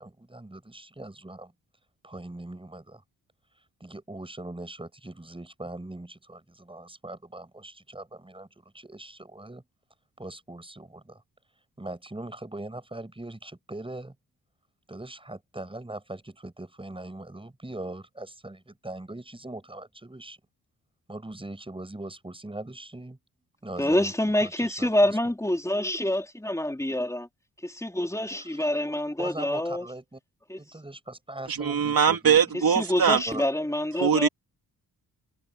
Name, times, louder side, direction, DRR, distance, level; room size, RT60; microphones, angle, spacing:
voice 1, 0.0-1.5 2.0-3.0 3.8-8.5 8.7-9.6 10.2-11.2 11.8-14.1 14.9-20.4 21.1-23.2 23.6-24.1 24.4-25.2 28.4-28.7 29.2-30.2 30.6-32.4 33.3-33.4, right 2 dB, 15° right, 7.4 m, -40 dB
voice 2, 23.8-27.3 27.6-29.9 30.5-30.6 32.7-34.3, left 1 dB, 10° left, 3.6 m, -26 dB
voice 3, 31.5-33.2 34.0-34.3, right 7 dB, 70° right, 3.1 m, -22 dB
wide cardioid pair, 110°, 37 cm